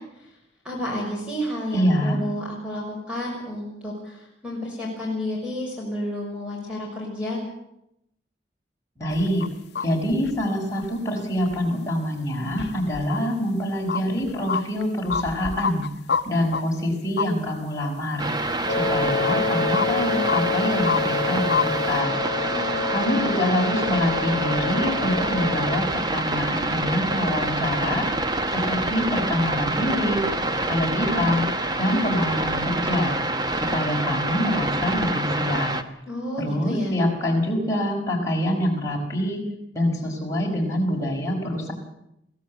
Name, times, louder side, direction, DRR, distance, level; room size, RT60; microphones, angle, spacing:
voice 1, 0.6-7.4 22.5-22.8 23.1-23.4 36.1-37.0, left 1 dB, 5° right, -3 dB, 6.1 m, -31 dB
voice 2, 1.7-2.2 9.0-9.4 9.8-15.8 16.3-18.3 18.8-22.2 22.9-28.1 28.5-30.2 30.6-31.5 31.8-33.2 33.6-35.7 36.4-39.4 39.7-41.7, equal, 15° left, -2 dB, 5.4 m, -25 dB
sound 1, 9.1-9.5 9.7-9.9 10.1-10.4 10.8-10.9 11.4-11.6 12.5-13.2 13.9-16.2 16.5-16.6 17.2-17.3 17.8-17.9 19.2-19.4 19.7-20.4 20.9-21.0 21.5-21.6 22.0-22.1, left 6 dB, 60° left, 0.8 m, -27 dB
sound 2, 18.2-35.8, right 2 dB, 20° right, 1.1 m, -26 dB
Wind instrument woodwind instrument, 18.7-26.0, left 5 dB, 40° left, 1.1 m, -28 dB
22.5 x 16.0 x 8.5 m, 0.82 s
head